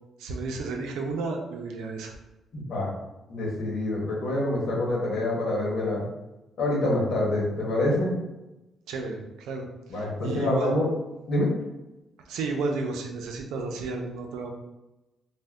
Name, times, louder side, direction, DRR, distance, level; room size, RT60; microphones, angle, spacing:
voice 1, 0.2-2.1 8.9-10.7 12.2-14.5, right 3 dB, 85° right, 3 dB, 0.5 m, -32 dB
voice 2, 2.5-2.9 3.3-6.0 6.6-8.1 9.9-10.9 11.3-11.5, left 1 dB, 70° left, -4 dB, 1.1 m, -26 dB
2.6 x 2.1 x 3.3 m, 0.99 s
cardioid pair, 90°, 0 cm